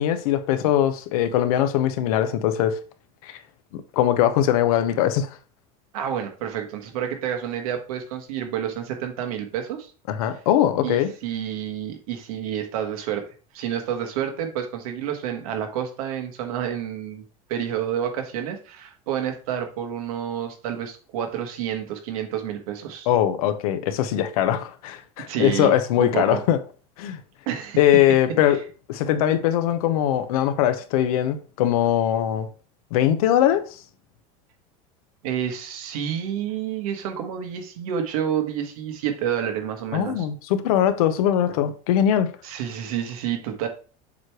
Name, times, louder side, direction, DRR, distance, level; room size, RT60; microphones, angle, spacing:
voice 1, 0.0-2.8 3.2-3.4 3.7-5.3 10.1-11.1 23.1-26.6 27.0-27.2 27.8-28.6 28.9-32.5 32.9-33.6 39.9-42.3, left 11 dB, 90° left, 0.9 m, -21 dB
voice 2, 5.9-9.9 10.3-10.4 10.8-17.2 17.5-23.1 25.3-26.4 27.5-28.0 28.5-28.6 35.2-40.3 42.4-43.7, right 9 dB, 80° right, 1.5 m, -29 dB
7.3 x 3.2 x 4.5 m
cardioid pair, 175°, 18 cm